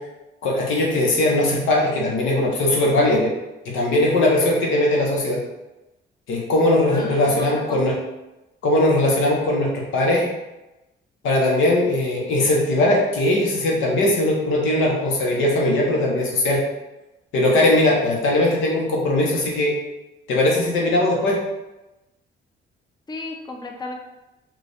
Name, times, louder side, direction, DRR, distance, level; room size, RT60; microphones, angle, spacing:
voice 1, 0.4-3.3 3.6-5.4 6.3-7.9 8.6-10.3 11.2-16.6 17.3-19.7 20.3-21.4, left 1 dB, 85° left, -2 dB, 0.9 m, -19 dB
voice 2, 6.9-7.8 23.1-23.9, left 3 dB, 20° left, 2 dB, 0.5 m, -34 dB
3.1 x 2.4 x 4.0 m, 1.0 s
cardioid pair, 90°, 20 cm